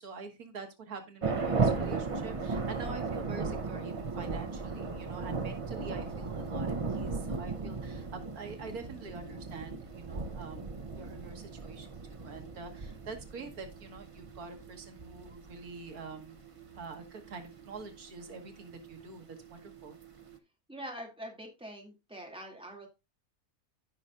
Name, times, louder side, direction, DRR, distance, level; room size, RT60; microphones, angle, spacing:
voice 1, 0.0-16.4 16.7-20.0, right 4 dB, 85° right, 5 dB, 1.9 m, -46 dB
sound 1, 1.2-20.4, right 4 dB, 30° right, 0.6 m, -37 dB
voice 2, 20.7-22.9, equal, 5° right, 0 dB, 2.3 m, -44 dB
15.0 x 5.5 x 2.4 m, 0.24 s
omnidirectional pair, 1.5 m